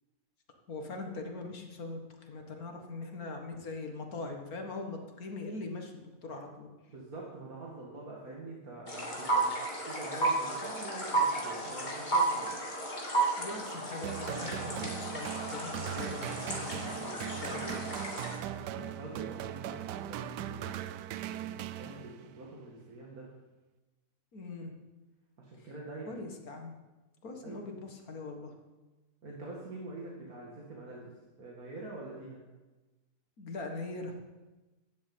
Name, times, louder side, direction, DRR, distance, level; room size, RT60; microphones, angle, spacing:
voice 1, 0.7-6.7 13.4-17.8 24.3-24.7 25.6-25.7 26.1-26.8 27.2-28.6 33.4-34.1, left 3 dB, 60° left, 3 dB, 2.1 m, -41 dB
voice 2, 6.9-9.5 9.9-12.6 18.5-20.8 21.4-23.3 25.4-26.2 27.4-27.7 29.2-32.4, right 2 dB, 60° right, -3 dB, 2.5 m, -45 dB
sound 1, 8.9-18.4, right 2 dB, 25° left, 2.8 m, -33 dB
sound 2, 14.0-22.4, right 11 dB, 90° right, 1.2 m, -39 dB
12.5 x 8.0 x 8.5 m, 1.2 s
omnidirectional pair, 1.7 m